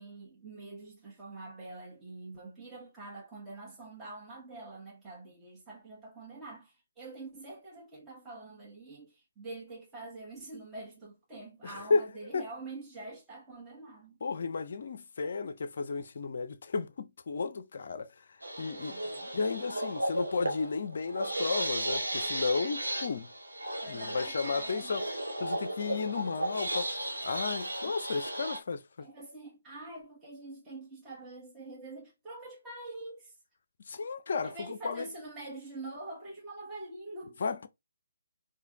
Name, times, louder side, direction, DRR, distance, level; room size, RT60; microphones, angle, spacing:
voice 1, 0.0-14.2 18.6-19.4 23.8-25.0 27.8-27.9 29.0-33.3 34.4-37.4, right 2 dB, 10° right, 1.2 m, -45 dB
voice 2, 11.6-12.4 14.2-18.1 18.6-18.9 19.3-23.3 23.9-25.0 25.4-28.8 33.9-35.1 37.4-37.7, left 4 dB, 50° left, 0.5 m, -33 dB
sound 1, 18.4-28.6, right 1 dB, 75° right, 0.8 m, -35 dB
4.8 x 2.3 x 2.9 m
figure-of-eight pair, 140°, 0 cm